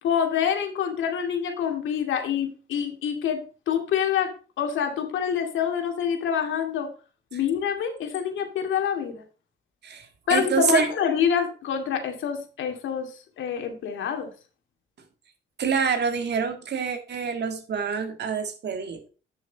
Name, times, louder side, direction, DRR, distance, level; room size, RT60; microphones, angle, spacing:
voice 1, 0.0-4.3 4.6-6.9 7.3-9.2 10.3-14.3, left 8 dB, 75° left, 4 dB, 2.4 m, -26 dB
voice 2, 10.3-10.9 15.6-19.0, right 6 dB, 60° right, 6 dB, 2.1 m, -26 dB
11.0 x 6.4 x 4.1 m, 0.36 s
cardioid pair, 90°, 20 cm